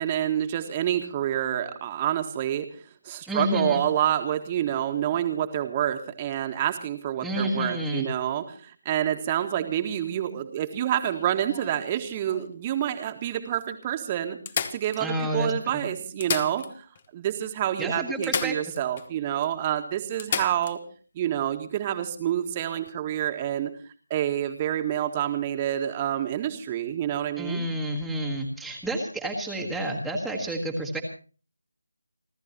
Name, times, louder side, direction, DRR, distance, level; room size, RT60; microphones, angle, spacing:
voice 1, 0.0-2.7 3.0-14.4 14.7-16.8 17.1-20.8 21.1-23.7 24.1-27.7, right 11 dB, 15° right, 5 dB, 1.7 m, -28 dB
voice 2, 3.3-3.8 7.2-8.1 15.0-15.8 17.8-18.6 27.4-31.0, equal, ahead, -3 dB, 1.6 m, -29 dB
sound 1, 10.9-12.6 13.2-13.3 13.6-13.7 14.5-15.5 16.0-17.1 17.3-17.4 18.2-19.1 19.4-19.5 20.2-20.8 22.7-22.9, left 7 dB, 25° left, 1.1 m, -33 dB
30.0 x 13.0 x 3.0 m, 0.38 s
figure-of-eight pair, 160°, 0 cm